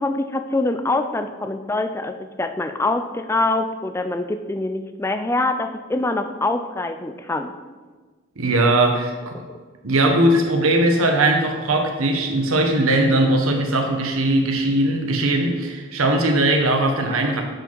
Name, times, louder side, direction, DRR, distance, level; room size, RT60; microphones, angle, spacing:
voice 1, 0.0-7.5 9.3-9.5, left 2 dB, 10° left, 8 dB, 0.3 m, -24 dB
voice 2, 8.4-9.4 9.8-17.4, right 1 dB, 90° right, 3 dB, 1.1 m, -19 dB
7.7 x 4.8 x 4.6 m, 1.4 s
head